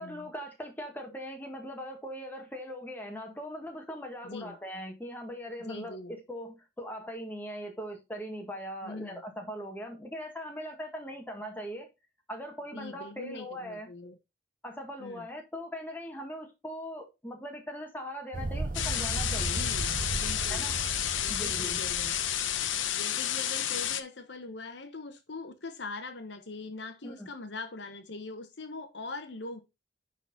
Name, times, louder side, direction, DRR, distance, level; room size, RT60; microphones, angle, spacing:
voice 1, 0.0-11.9 12.3-13.9 14.6-19.6 20.5-20.7 21.3-21.8 27.0-27.3, equal, 10° left, 1.5 m, -40 dB
voice 2, 4.2-4.6 5.7-6.2 8.8-9.2 12.7-14.1 15.0-15.3 19.5-20.7 21.2-22.1 22.9-29.6, left 3 dB, 65° left, 1.1 m, -42 dB
sound 1, 18.3-22.8, right 2 dB, 45° right, 0.6 m, -36 dB
sound 2, 18.7-24.0, left 10 dB, 90° left, 0.8 m, -31 dB
9.5 x 4.1 x 4.0 m
head